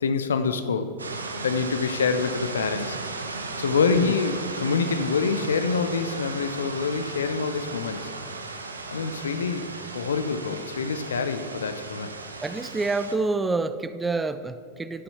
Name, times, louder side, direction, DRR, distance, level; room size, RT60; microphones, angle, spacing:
voice 1, 0.0-1.0 1.3-3.0 3.6-8.1 8.9-12.2, left 5 dB, 65° left, 10 dB, 0.6 m, -26 dB
sound 1, 1.0-13.2, right 3 dB, 75° right, 0.8 m, -36 dB
voice 2, 12.4-15.0, right 3 dB, 10° right, 11 dB, 0.4 m, -27 dB
11.0 x 6.8 x 5.7 m, 2.1 s
figure-of-eight pair, 90°, 0 cm